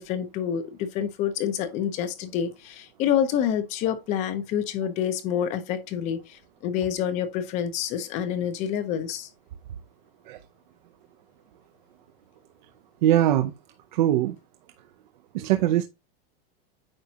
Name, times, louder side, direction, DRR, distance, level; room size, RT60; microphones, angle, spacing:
voice 1, 0.0-9.3, left 9 dB, 25° left, 0.6 m, -27 dB
voice 2, 13.0-13.5 13.9-14.3 15.3-15.8, right 12 dB, 50° right, 0.6 m, -21 dB
8.8 x 5.1 x 2.8 m
supercardioid pair, 175°, 30 cm